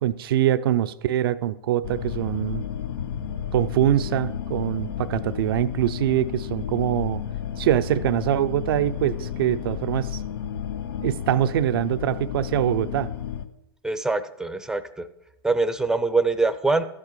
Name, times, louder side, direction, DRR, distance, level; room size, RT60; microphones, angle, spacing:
voice 1, 0.0-2.6 3.5-7.2 7.6-10.2 11.0-13.1, right 12 dB, 65° right, 0.6 m, -23 dB
sound 1, 1.8-13.5, left 9 dB, 70° left, 0.8 m, -32 dB
voice 2, 13.8-15.1 15.4-16.8, right 3 dB, 5° right, 0.7 m, -23 dB
12.5 x 7.6 x 4.7 m
hypercardioid pair, 110°, 13 cm